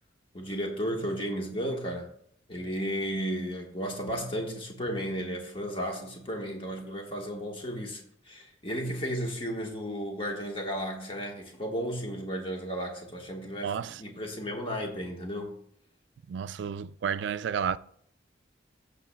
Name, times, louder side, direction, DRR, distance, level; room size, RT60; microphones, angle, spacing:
voice 1, 0.3-2.1 2.5-15.5, equal, 30° left, 1.3 m, -34 dB
voice 2, 13.6-14.0 16.3-17.8, right 7 dB, 70° right, 0.3 m, -31 dB
14.5 x 6.8 x 2.2 m
head